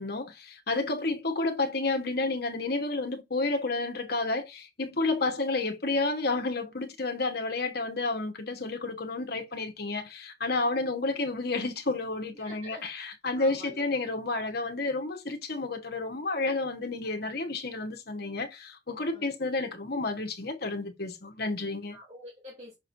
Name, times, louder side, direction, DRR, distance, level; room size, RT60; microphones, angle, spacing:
voice 1, 0.0-22.0, left 3 dB, 55° left, 1.3 m, -31 dB
voice 2, 12.3-12.9 13.3-13.8 19.1-19.3 21.9-22.7, equal, 35° right, 2.5 m, -47 dB
6.4 x 6.1 x 2.6 m
head